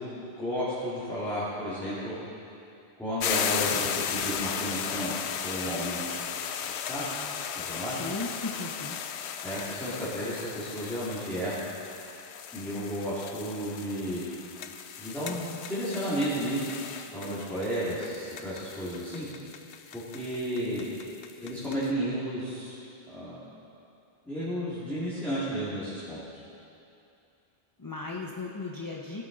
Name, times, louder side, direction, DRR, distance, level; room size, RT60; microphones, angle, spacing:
voice 1, 0.0-2.2 3.0-6.0 6.9-7.1 7.6-8.0 9.4-11.6 12.5-14.3 15.0-16.8 17.1-19.3 19.9-20.9 21.4-22.8 23.1-23.4 24.3-26.2, equal, ahead, -12 dB, 2.2 m, -32 dB
sound 1, 3.2-21.9, left 8 dB, 85° left, 0.9 m, -36 dB
voice 2, 7.9-9.0 27.8-29.2, left 3 dB, 25° left, -1 dB, 0.6 m, -36 dB
15.5 x 9.9 x 3.9 m, 2.7 s
omnidirectional pair, 1.1 m